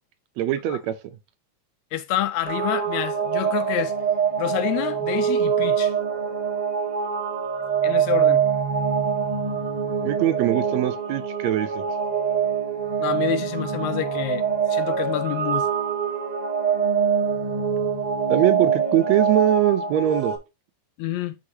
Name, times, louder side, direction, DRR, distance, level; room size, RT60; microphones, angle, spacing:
voice 1, 0.4-1.0 10.1-11.8 18.3-20.3, right 12 dB, 75° right, 1.8 m, -22 dB
voice 2, 1.9-3.9 4.4-5.9 7.8-8.4 13.0-14.4 14.7-15.7 21.0-21.4, left 12 dB, 75° left, 1.9 m, -27 dB
sound 1, 2.4-20.4, right 7 dB, 20° right, 1.3 m, -24 dB
9.6 x 3.9 x 2.8 m
omnidirectional pair, 3.4 m